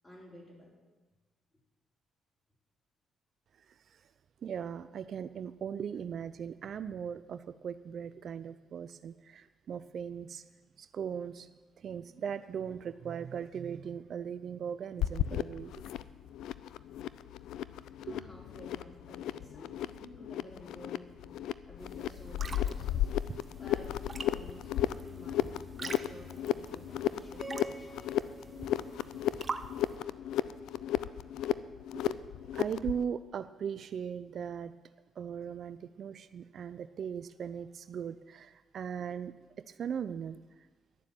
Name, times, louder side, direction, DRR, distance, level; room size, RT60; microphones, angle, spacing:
voice 1, 0.0-0.8 18.0-21.2 21.7-23.1 23.6-24.7 25.0-28.0, left 1 dB, 20° left, -3 dB, 5.1 m, -52 dB
voice 2, 3.7-4.0 4.4-10.4 10.8-11.5 11.8-15.8 18.1-18.2 31.9-34.7 35.2-40.4, right 7 dB, 60° right, 13 dB, 0.5 m, -39 dB
sound 1, 15.0-33.0, left 12 dB, 80° left, 0.4 m, -34 dB
sound 2, 21.8-30.0, right 4 dB, 35° right, 0.8 m, -45 dB
sound 3, 27.4-29.8, right 2 dB, 20° right, 3.4 m, -48 dB
11.5 x 7.3 x 9.1 m, 1.3 s
supercardioid pair, 70°, 0 cm